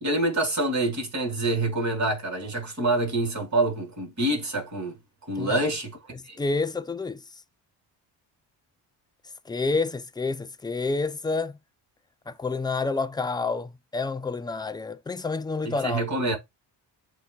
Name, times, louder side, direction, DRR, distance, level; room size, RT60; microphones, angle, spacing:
voice 1, 0.0-4.9 5.3-5.9 6.2-6.4 15.6-16.4, right 2 dB, 35° right, 2.8 m, -26 dB
voice 2, 6.1-7.2 9.5-11.6 12.3-16.1, left 3 dB, 10° left, 0.4 m, -29 dB
7.7 x 2.9 x 2.3 m
supercardioid pair, 60°, 49 cm